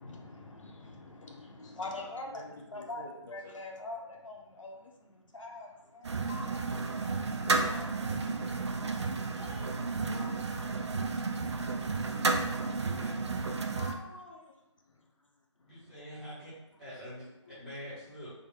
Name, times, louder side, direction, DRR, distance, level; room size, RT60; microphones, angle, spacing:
voice 1, 0.0-6.1 7.1-9.4 15.8-16.0 16.7-16.8 17.5-17.6, left 2 dB, 80° left, 1 dB, 0.8 m, -46 dB
voice 2, 1.6-2.1 2.3-3.5 6.3-6.9 9.3-9.8 10.1-10.3 13.7-14.6 16.9-17.0 17.4-17.6, left 2 dB, 35° left, -5 dB, 0.5 m, -48 dB
sound 1, 6.0-13.9, right 3 dB, 60° right, 0.4 m, -32 dB
voice 3, 12.8-13.1 15.7-16.5 16.8-17.2 17.6-18.3, equal, 5° right, -12 dB, 0.8 m, -45 dB
3.6 x 2.1 x 3.5 m, 0.94 s
figure-of-eight pair, 160°, 16 cm